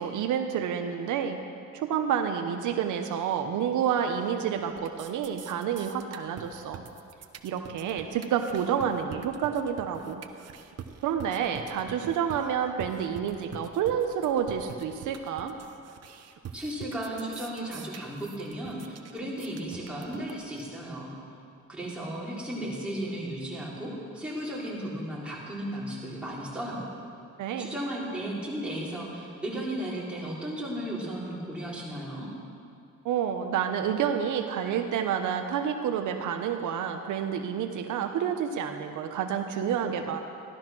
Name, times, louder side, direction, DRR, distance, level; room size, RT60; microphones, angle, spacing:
voice 1, 0.0-1.4 1.7-6.8 7.4-10.2 11.0-15.6 27.4-27.7 33.0-40.2, right 8 dB, 80° right, 5 dB, 1.0 m, -29 dB
sound 1, 4.0-4.4 4.7-20.7, right 8 dB, 55° right, 1.0 m, -45 dB
voice 2, 16.5-21.1 21.7-26.8 27.6-32.3, right 1 dB, 5° right, -6 dB, 4.4 m, -35 dB
15.0 x 12.0 x 6.1 m, 2.5 s
cardioid pair, 90°, 30 cm